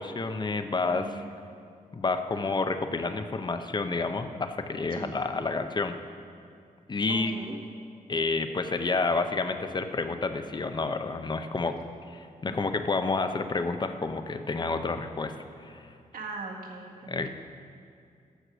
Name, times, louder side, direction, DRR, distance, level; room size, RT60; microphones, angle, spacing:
voice 1, 0.0-1.2 1.9-6.0 6.9-7.3 8.1-11.8 12.1-15.3 15.6-16.0 17.1-17.3, left 3 dB, 30° left, 8 dB, 0.7 m, -29 dB
voice 2, 0.9-1.7 4.9-5.1 7.1-7.6 12.5-12.6 16.1-17.3, right 3 dB, 70° right, 0 dB, 1.7 m, -40 dB
14.5 x 6.5 x 6.2 m, 2.4 s
wide cardioid pair, 130°, 15 cm